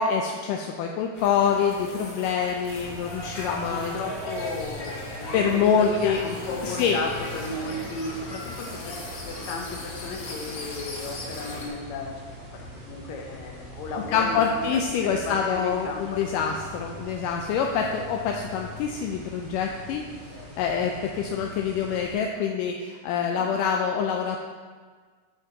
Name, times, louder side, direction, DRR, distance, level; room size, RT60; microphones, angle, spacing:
voice 1, 0.0-4.0 5.3-6.2 6.6-7.0 14.1-20.1 20.6-24.4, left 6 dB, 80° left, 1 dB, 1.9 m, -25 dB
sound 1, 1.1-11.7, left 1 dB, 50° left, 2.8 m, -38 dB
sound 2, 2.6-22.2, equal, 55° right, 0.5 m, -42 dB
voice 2, 3.5-9.0 9.2-12.1 12.5-16.5 23.3-23.5, left 3 dB, 65° left, 1 dB, 2.0 m, -35 dB
13.0 x 5.4 x 3.9 m, 1.5 s
omnidirectional pair, 4.3 m